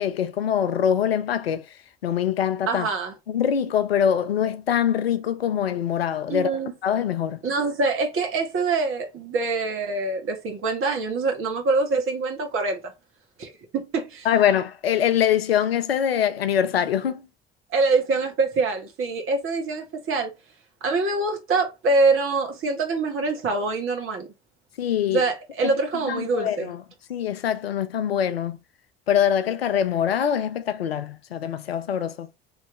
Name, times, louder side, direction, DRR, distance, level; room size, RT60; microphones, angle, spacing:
voice 1, 0.0-1.6 2.0-2.9 3.3-6.5 6.8-7.4 14.3-17.3 24.8-25.2 25.6-25.7 26.1-26.8 27.1-28.6 29.1-32.3, left 9 dB, 85° left, 0.4 m, -23 dB
voice 2, 2.7-3.1 6.3-6.7 7.4-12.8 13.4-14.3 17.7-20.3 20.8-24.3 25.1-26.7, right 3 dB, 45° right, 1.5 m, -24 dB
3.3 x 3.1 x 3.0 m
figure-of-eight pair, 55°, 30 cm